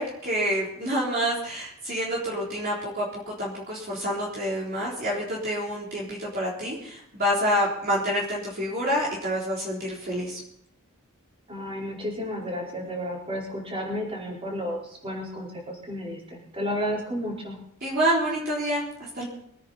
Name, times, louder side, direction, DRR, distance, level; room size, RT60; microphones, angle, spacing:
voice 1, 0.0-10.4 17.8-18.9 19.1-19.3, equal, 45° right, -5 dB, 3.9 m, -27 dB
voice 2, 11.5-17.6, equal, 25° right, -3 dB, 4.8 m, -32 dB
24.0 x 9.9 x 4.3 m, 0.73 s
head